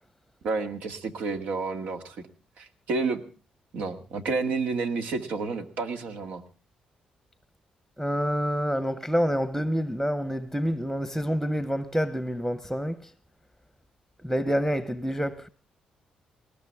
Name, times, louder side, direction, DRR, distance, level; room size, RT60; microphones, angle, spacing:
voice 1, 0.4-2.2 2.6-3.2 3.7-6.4, right 4 dB, 80° right, 2.0 m, -30 dB
voice 2, 8.0-13.0 14.2-15.5, equal, 5° right, 0.9 m, -27 dB
20.0 x 19.5 x 3.5 m
cardioid pair, 100°, 3 cm